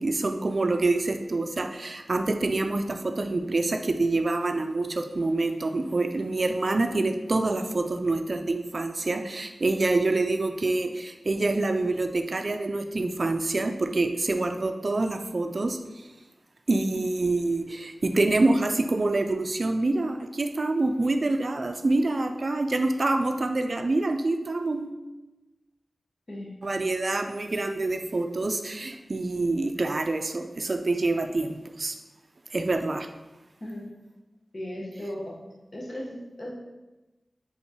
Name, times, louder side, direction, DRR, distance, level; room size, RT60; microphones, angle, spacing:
voice 1, 0.0-16.1 16.7-25.0 26.6-32.0 32.5-33.1, right 2 dB, 60° right, 6 dB, 0.3 m, -26 dB
voice 2, 34.5-35.3 35.7-36.5, left 1 dB, 55° left, -3 dB, 1.1 m, -36 dB
4.4 x 3.8 x 2.8 m, 1.1 s
wide cardioid pair, 65°, 0 cm